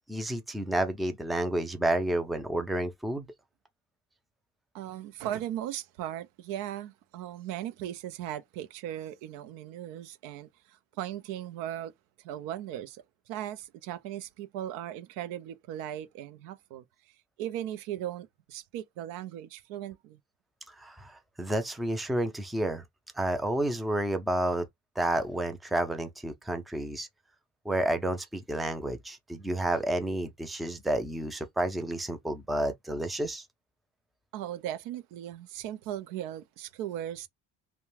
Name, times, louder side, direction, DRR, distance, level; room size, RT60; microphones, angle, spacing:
voice 1, 0.1-3.3 20.8-22.8 23.2-24.6 25.0-27.1 27.7-33.4, right 1 dB, ahead, 0.3 m, -30 dB
voice 2, 4.7-11.9 12.2-16.8 17.4-20.2 34.3-37.3, right 11 dB, 85° right, 0.5 m, -38 dB
2.4 x 2.2 x 3.1 m
cardioid pair, 105°, 33 cm